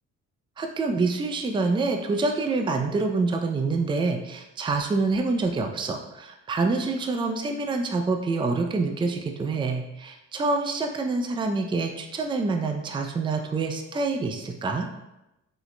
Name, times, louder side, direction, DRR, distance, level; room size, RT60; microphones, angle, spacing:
voice 1, 0.6-14.9, right 3 dB, 15° right, 4 dB, 0.4 m, -26 dB
6.2 x 2.9 x 2.2 m, 0.91 s
cardioid pair, 90°, 30 cm